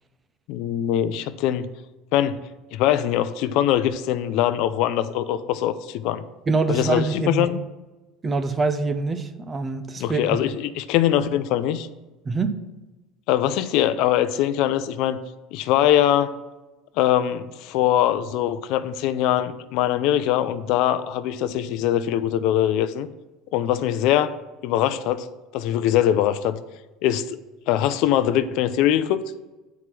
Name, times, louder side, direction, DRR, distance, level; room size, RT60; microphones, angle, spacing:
voice 1, 0.5-1.7 2.1-2.4 2.7-6.2 6.7-7.6 10.0-11.9 13.3-15.2 15.5-16.3 17.0-23.1 23.5-24.3 24.6-25.3 25.5-26.6 27.0-27.4 27.7-29.2, left 11 dB, 65° left, 0.5 m, -22 dB
voice 2, 6.5-7.5 8.2-10.2 12.2-12.6, right 3 dB, 25° right, 0.6 m, -24 dB
8.0 x 4.7 x 6.0 m
supercardioid pair, 125°, 0 cm